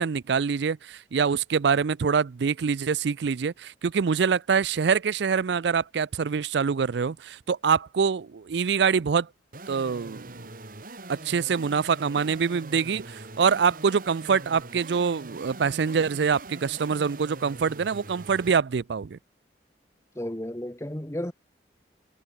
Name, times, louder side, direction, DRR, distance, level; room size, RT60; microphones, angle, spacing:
voice 1, 0.0-9.3 9.7-10.3 11.1-19.2, right 6 dB, 70° right, 0.4 m, -25 dB
sound 1, 9.5-18.6, right 2 dB, 50° right, 1.9 m, -43 dB
voice 2, 20.2-21.3, left 1 dB, 15° left, 1.1 m, -33 dB
head